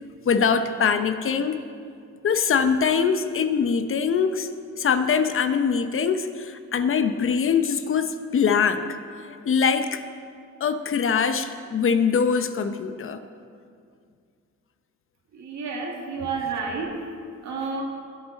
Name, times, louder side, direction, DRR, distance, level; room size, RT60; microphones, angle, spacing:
voice 1, 0.2-1.7 2.2-4.5 4.8-8.9 9.2-10.1 10.6-13.2, left 6 dB, 45° left, 10 dB, 0.7 m, -23 dB
voice 2, 15.3-16.9 17.4-17.8, right 4 dB, 65° right, 0 dB, 2.2 m, -30 dB
16.5 x 8.1 x 4.1 m, 2.3 s
cardioid pair, 90°, 30 cm